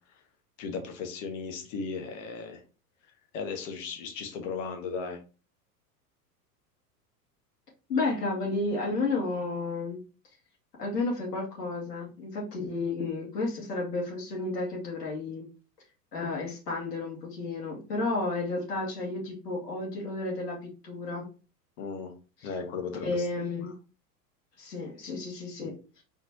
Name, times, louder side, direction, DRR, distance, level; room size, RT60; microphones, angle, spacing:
voice 1, 0.6-2.6 3.3-5.2 21.8-22.1 22.4-23.3, left 5 dB, 50° left, 4 dB, 1.3 m, -36 dB
voice 2, 7.9-10.0 10.8-15.4 16.1-20.6 20.8-21.3 22.4-22.5 23.0-23.7 24.6-26.0, left 3 dB, 75° left, -2 dB, 2.5 m, -32 dB
4.5 x 3.9 x 2.8 m, 0.33 s
figure-of-eight pair, 90°, 48 cm